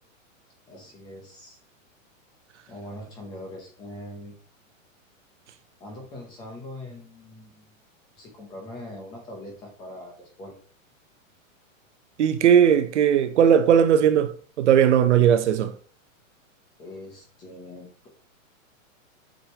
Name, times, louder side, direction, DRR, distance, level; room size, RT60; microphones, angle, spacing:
voice 1, 0.7-1.6 2.7-4.3 5.8-7.8 8.2-10.6 16.8-18.1, left 1 dB, 10° left, 0.8 m, -42 dB
voice 2, 12.2-14.3 14.6-15.7, right 8 dB, 60° right, 0.9 m, -18 dB
7.8 x 5.1 x 2.9 m
supercardioid pair, 180°, 40 cm